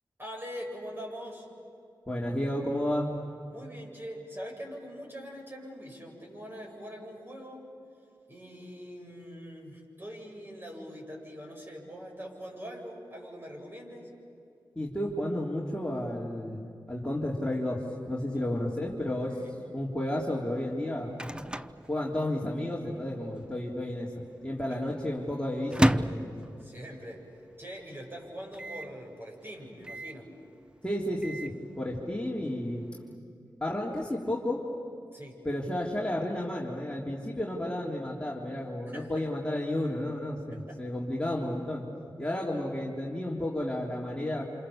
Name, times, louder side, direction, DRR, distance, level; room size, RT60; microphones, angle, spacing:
voice 1, 0.2-1.5 3.5-7.7 8.3-14.1 18.3-18.4 19.4-19.6 24.7-24.8 26.6-27.3 27.6-30.3 35.1-35.4 38.9-39.3 40.5-40.8, equal, 25° right, 0 dB, 7.9 m, -43 dB
voice 2, 2.1-3.1 14.8-19.4 19.7-21.1 21.9-24.1 24.4-26.3 30.8-32.8 33.6-34.6 35.5-41.8 42.2-44.4, left 1 dB, 10° left, -4 dB, 3.5 m, -32 dB
Microwave oven, 20.6-22.8 23.0-23.1 23.3-23.9 24.4-27.1 27.5-27.6 27.8-27.9 28.5-29.0 29.8-30.3 30.9-31.6, equal, 10° right, 0.7 m, -32 dB
28.0 x 28.0 x 7.3 m, 2.6 s
cardioid pair, 45°, 8 cm